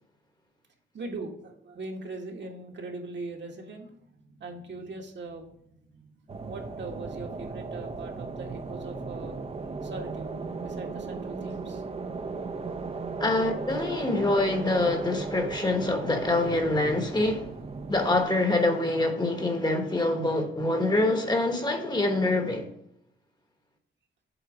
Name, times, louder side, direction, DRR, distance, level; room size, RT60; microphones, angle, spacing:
voice 1, 0.9-9.4 9.8-10.3 10.6-11.8, right 3 dB, 60° right, 1.5 m, -40 dB
sound 1, 6.3-18.2, right 4 dB, 30° right, 0.6 m, -36 dB
voice 2, 13.2-17.5 17.9-22.7, left 2 dB, 20° left, 1.1 m, -25 dB
8.0 x 4.0 x 6.1 m
wide cardioid pair, 160°, 20 cm